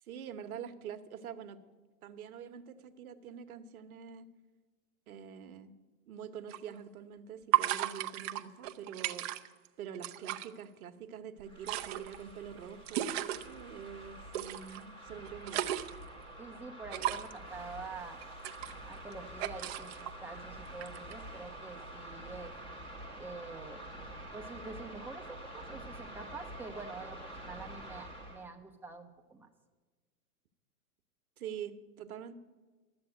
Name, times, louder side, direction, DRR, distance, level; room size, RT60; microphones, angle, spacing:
voice 1, 0.1-1.6 2.0-4.3 5.1-5.7 6.1-9.3 9.8-15.7 31.4-32.3, right 8 dB, 70° right, 8 dB, 1.2 m, -45 dB
sound 1, 6.5-6.6 7.5-9.7 9.9-10.5 11.4-13.5 14.3-14.8 15.2-16.1 16.9-17.4 18.2-19.1 19.4-20.1 20.8-21.1, right 13 dB, 45° right, 0.8 m, -34 dB
sound 2, 11.4-28.5, right 1 dB, 10° left, 1.7 m, -47 dB
voice 2, 16.4-18.2 18.8-22.5 23.2-23.8 24.3-29.5, right 3 dB, 5° right, 2 dB, 1.0 m, -46 dB
12.5 x 7.7 x 9.0 m, 1.4 s
hypercardioid pair, 125°, 45 cm